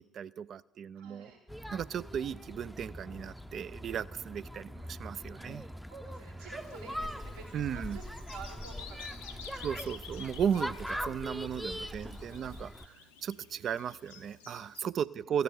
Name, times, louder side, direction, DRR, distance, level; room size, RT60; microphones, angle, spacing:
voice 1, 0.0-1.3 1.7-5.6 7.5-8.0 9.6-13.0 13.2-15.4, right 8 dB, 55° right, 16 dB, 0.4 m, -35 dB
voice 2, 0.9-1.4 5.9-9.6 11.9-12.6, right 4 dB, 80° right, 0 dB, 1.9 m, -50 dB
sound 1, 1.5-12.9, equal, ahead, 0.6 m, -42 dB
Bird vocalization bird call bird song, 6.5-14.8, left 7 dB, 90° left, 0.8 m, -52 dB
14.5 x 6.7 x 9.3 m, 1.1 s
hypercardioid pair, 55°, 0 cm